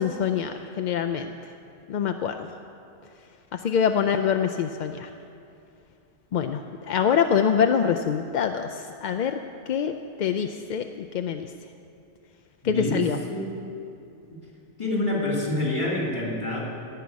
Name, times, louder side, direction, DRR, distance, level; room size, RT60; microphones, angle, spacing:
voice 1, 0.0-1.4 1.9-2.5 3.5-5.1 6.3-6.6 6.9-9.4 9.7-11.5 12.6-13.2, left 7 dB, 60° left, 7 dB, 0.5 m, -25 dB
voice 2, 12.6-13.7 14.3-14.4 14.8-16.6, left 1 dB, 25° left, -4 dB, 3.0 m, -27 dB
17.0 x 5.8 x 9.5 m, 2.6 s
omnidirectional pair, 1.1 m